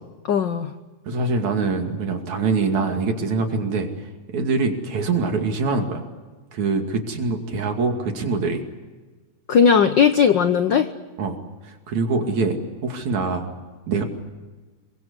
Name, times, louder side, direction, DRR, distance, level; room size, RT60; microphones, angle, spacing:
voice 1, 0.3-0.7 9.5-10.9, left 7 dB, 75° left, 9 dB, 1.0 m, -17 dB
voice 2, 1.1-3.9 4.3-6.1 6.5-8.6 11.2-11.4 11.6-13.5 13.9-14.0, right 4 dB, 70° right, 4 dB, 3.9 m, -24 dB
26.5 x 24.0 x 8.1 m, 1.3 s
omnidirectional pair, 3.5 m